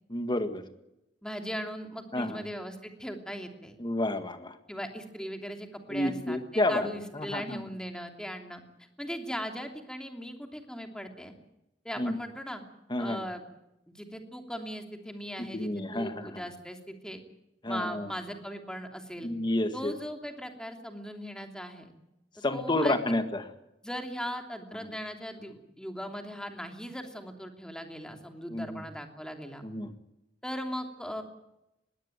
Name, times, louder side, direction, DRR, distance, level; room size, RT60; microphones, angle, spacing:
voice 1, 0.1-0.6 2.1-2.4 3.8-4.6 5.9-6.9 7.1-7.6 12.0-12.1 12.9-13.2 15.4-16.4 17.6-18.1 19.2-19.9 22.4-23.5 28.5-28.8 29.6-29.9, left 1 dB, 25° left, 8 dB, 1.8 m, -30 dB
voice 2, 1.2-3.8 4.7-8.6 9.0-11.3 11.8-12.6 13.0-13.4 13.9-17.2 17.6-19.3 19.7-21.9 22.5-23.2 23.8-29.6 30.4-31.2, equal, 5° left, 4 dB, 2.9 m, -39 dB
21.5 x 16.5 x 9.1 m, 0.89 s
head